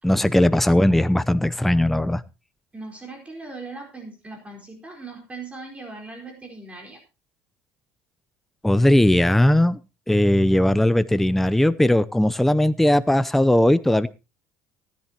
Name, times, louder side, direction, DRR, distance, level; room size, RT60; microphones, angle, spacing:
voice 1, 0.0-2.2 8.6-9.8 10.1-14.1, left 1 dB, 5° left, 0.6 m, -18 dB
voice 2, 2.7-7.0, right 3 dB, 20° right, 4.4 m, -39 dB
19.0 x 10.5 x 2.9 m
supercardioid pair, 95°, 7 cm